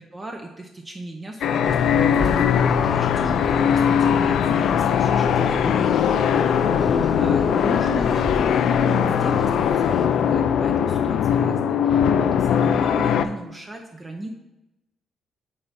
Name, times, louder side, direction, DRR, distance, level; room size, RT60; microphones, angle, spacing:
voice 1, 0.0-6.4 6.7-14.3, right 2 dB, 25° right, 2 dB, 0.7 m, -37 dB
sound 1, 1.4-13.3, left 8 dB, 75° left, 0.4 m, -20 dB
sound 2, 1.6-10.1, left 3 dB, 30° left, 0.9 m, -31 dB
8.6 x 3.4 x 4.1 m, 0.96 s
cardioid pair, 90°, 0 cm